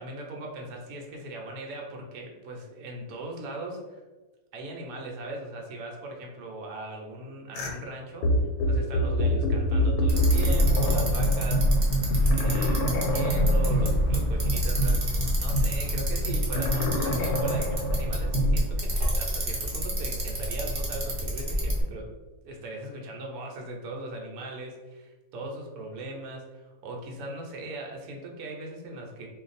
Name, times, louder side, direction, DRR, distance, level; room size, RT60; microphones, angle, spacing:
voice 1, 0.0-4.0 4.5-8.3 8.6-11.7 12.3-22.1 22.4-29.3, right 2 dB, 75° right, 0 dB, 1.1 m, -39 dB
sound 1, 7.6-7.7 8.2-18.6, equal, 85° left, 1.1 m, -25 dB
Bicycle, 10.1-21.8, equal, 40° right, 0.7 m, -29 dB
2.5 x 2.3 x 4.0 m, 1.2 s
omnidirectional pair, 1.6 m